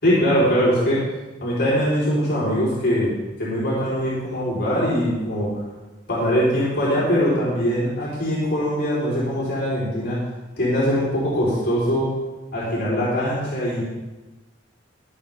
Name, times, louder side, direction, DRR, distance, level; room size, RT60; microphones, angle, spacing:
voice 1, 0.0-1.0 1.4-3.1 3.4-5.5 6.1-10.2 10.6-12.1 12.5-13.8, equal, 55° left, -7 dB, 4.4 m, -22 dB
22.0 x 7.4 x 3.7 m, 1.1 s
head